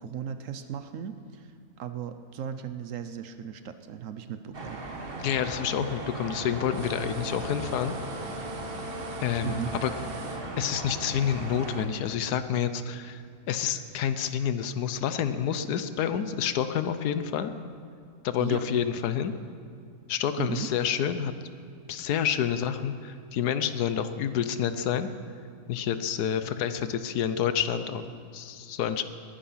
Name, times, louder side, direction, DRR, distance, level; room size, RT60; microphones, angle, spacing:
voice 1, 0.0-4.8 9.4-9.7 18.4-18.6 20.4-20.7, right 8 dB, 65° right, 10 dB, 1.0 m, -36 dB
sound 1, 4.5-11.9, right 2 dB, 40° right, 1.5 m, -37 dB
voice 2, 5.2-7.9 9.2-9.9 10.5-17.5 18.2-19.3 20.1-21.3 21.9-25.1 25.7-29.0, left 8 dB, 85° left, 11 dB, 1.3 m, -28 dB
sound 2, 6.7-10.4, right 1 dB, 80° right, 1.6 m, -42 dB
20.5 x 10.5 x 5.7 m, 2.3 s
omnidirectional pair, 1.6 m